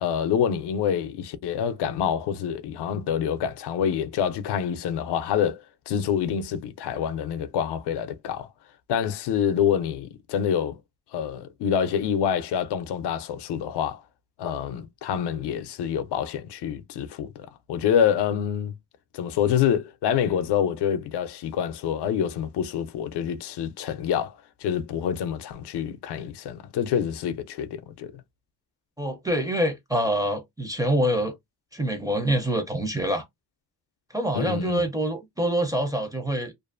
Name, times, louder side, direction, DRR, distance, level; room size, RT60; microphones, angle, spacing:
voice 1, 0.0-8.5 8.9-10.8 11.1-14.0 14.4-18.7 19.1-28.1 34.3-34.8, left 8 dB, 85° left, 0.5 m, -27 dB
voice 2, 29.0-31.3 31.7-33.2 34.1-36.5, right 1 dB, 10° right, 0.4 m, -25 dB
2.5 x 2.4 x 2.4 m
wide cardioid pair, 160°, 39 cm